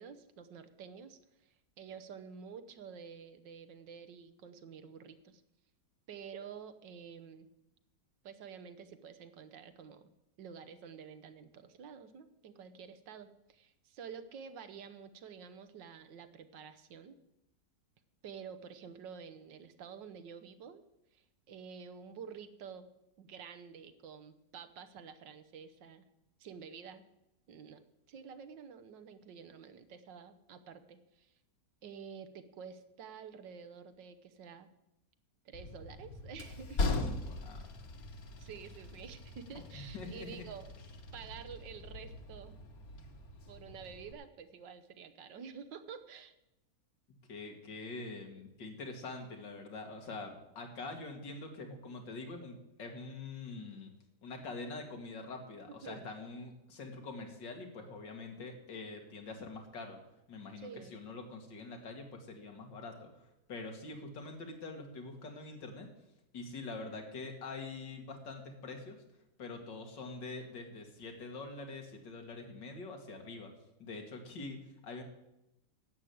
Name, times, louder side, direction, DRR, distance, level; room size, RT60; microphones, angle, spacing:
voice 1, 0.0-5.4 6.1-7.5 8.2-10.1 10.4-17.2 18.2-20.8 21.1-22.9 23.2-26.0 26.4-27.1 27.5-31.3 31.8-34.7 35.5-36.8 38.4-40.7 41.1-42.6 43.5-46.3 55.7-56.1 60.6-60.9, right 6 dB, 90° right, 10 dB, 1.7 m, -49 dB
Train, 35.5-44.1, left 2 dB, 55° left, 1.6 m, -40 dB
voice 2, 37.0-37.7 39.7-40.5 47.3-53.9 54.2-60.0 60.3-65.9 66.3-69.0 69.4-73.5 73.8-75.0, left 3 dB, 90° left, 4 dB, 2.6 m, -45 dB
11.5 x 7.8 x 8.5 m, 0.88 s
omnidirectional pair, 1.9 m